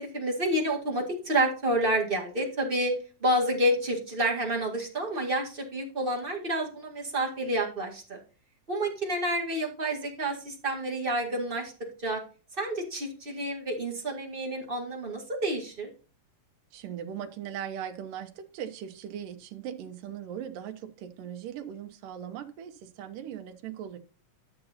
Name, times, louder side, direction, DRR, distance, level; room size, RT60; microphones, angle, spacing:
voice 1, 0.0-2.9 3.2-8.2 8.7-11.7 12.0-12.2 12.6-15.9, right 1 dB, 25° right, -1 dB, 1.3 m, -29 dB
voice 2, 16.7-24.0, right 9 dB, 80° right, 6 dB, 2.6 m, -39 dB
12.0 x 6.8 x 2.8 m, 0.36 s
omnidirectional pair, 3.9 m